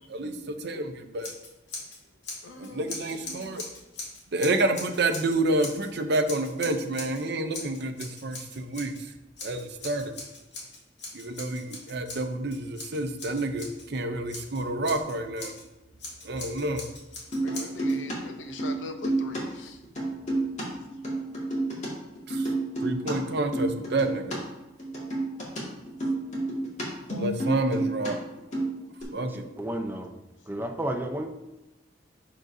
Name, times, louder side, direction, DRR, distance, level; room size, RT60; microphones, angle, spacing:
voice 1, 0.0-1.3 2.6-3.6 4.3-9.1 9.4-10.1 11.1-15.5 16.2-16.8 22.3-22.5 22.8-24.4 27.2-28.2 29.1-29.4, right 2 dB, 60° right, 7 dB, 0.6 m, -29 dB
Scissors, 1.2-5.9 6.3-7.2 7.5-9.0 9.4-13.9 14.3-15.6 16.0-18.0, left 3 dB, 65° left, 1.7 m, -41 dB
voice 2, 2.4-3.0 3.3-3.6 17.4-19.8, left 2 dB, 90° left, 7 dB, 0.7 m, -42 dB
sound 1, 17.3-18.1 18.4-19.4 19.7-21.9 22.1-24.4 24.6-28.1 28.4-29.0, right 2 dB, 40° left, 1.8 m, -29 dB
voice 3, 29.6-30.1 30.5-31.3, right 1 dB, 10° right, 4 dB, 0.6 m, -31 dB
11.0 x 3.8 x 2.6 m, 1.0 s
head